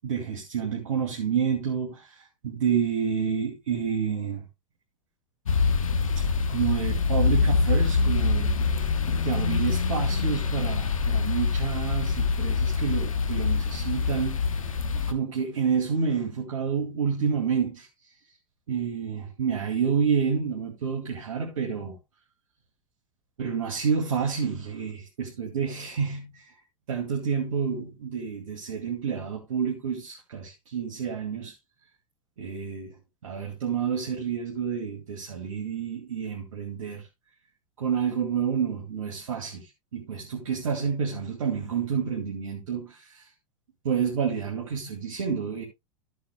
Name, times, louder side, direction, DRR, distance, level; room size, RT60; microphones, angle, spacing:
voice 1, 0.0-4.4 6.2-6.3 6.5-14.4 15.1-17.9 18.7-22.0 23.4-26.6 26.9-31.5 32.4-32.9 33.2-37.1 37.8-43.3 43.8-45.6, right 6 dB, 80° right, 2.3 m, -29 dB
sound 1, 5.5-15.1, left 5 dB, 90° left, 1.1 m, -25 dB
14.0 x 8.1 x 2.2 m
hypercardioid pair, 100°, 17 cm